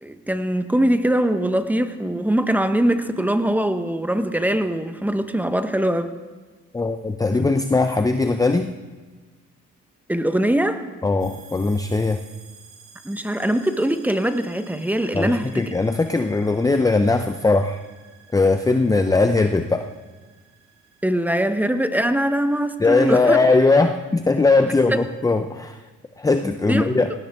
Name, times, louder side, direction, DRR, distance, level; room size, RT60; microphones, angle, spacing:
voice 1, 0.0-6.1 10.1-10.8 13.0-15.7 21.0-23.4 24.9-25.0 26.4-26.9, right 1 dB, 5° right, 9 dB, 1.0 m, -22 dB
voice 2, 6.7-8.7 11.0-12.2 15.1-17.8 18.3-19.9 22.8-25.8 26.2-27.1, left 3 dB, 10° left, 8 dB, 0.6 m, -19 dB
sound 1, 11.2-23.5, right 6 dB, 60° right, 3.2 m, -52 dB
18.5 x 17.5 x 3.6 m, 1.3 s
cardioid pair, 90°, 30 cm